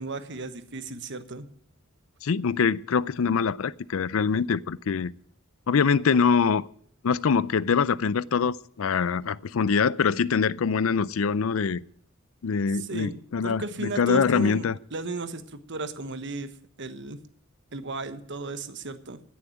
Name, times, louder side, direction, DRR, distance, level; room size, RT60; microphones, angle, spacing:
voice 1, 0.0-1.5 12.7-13.2 13.4-16.5 16.8-17.2 17.7-19.2, right 3 dB, 60° right, 1.2 m, -34 dB
voice 2, 2.2-5.1 5.7-6.6 7.0-11.8 12.4-14.8, left 6 dB, 70° left, 0.5 m, -24 dB
16.5 x 7.2 x 9.1 m
head